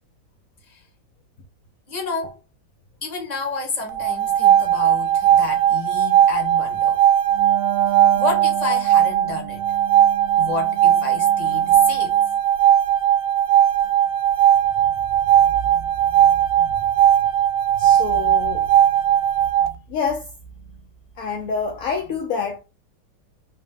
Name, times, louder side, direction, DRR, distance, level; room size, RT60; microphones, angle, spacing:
voice 1, 1.9-2.4 3.0-7.0 8.2-9.6 10.4-12.1 15.2-15.9 16.6-16.8 17.8-17.9 18.8-19.3 19.6-19.8 20.6-20.8, left 3 dB, 30° left, 1.0 m, -30 dB
sound 1, 3.9-19.7, right 11 dB, 90° right, 1.3 m, -18 dB
Wind instrument woodwind instrument, 7.3-12.4, right 14 dB, 70° right, 0.9 m, -32 dB
voice 2, 17.8-18.7 19.9-20.3 21.2-22.6, left 5 dB, 75° left, 0.8 m, -27 dB
3.1 x 2.8 x 3.6 m
omnidirectional pair, 2.0 m